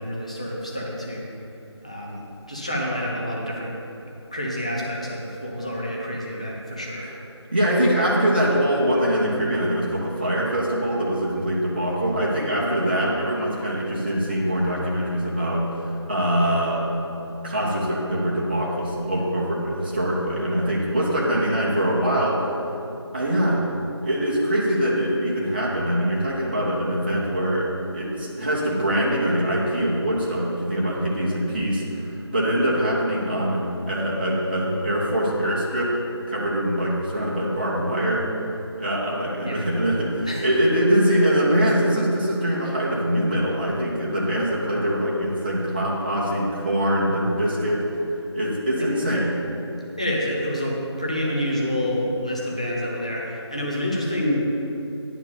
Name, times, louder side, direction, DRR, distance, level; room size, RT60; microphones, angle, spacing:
voice 1, 0.0-1.3 1.8-3.8 4.3-7.2 39.4-39.6 40.3-40.5 48.8-48.9 50.0-54.6, equal, 15° left, -4 dB, 0.6 m, -28 dB
voice 2, 7.5-16.9 17.4-22.5 23.1-23.6 24.0-36.0 36.3-38.3 38.8-47.8 48.3-49.3, equal, 20° right, -5 dB, 0.7 m, -23 dB
10.0 x 4.5 x 6.8 m, 2.8 s
figure-of-eight pair, 170°, 15 cm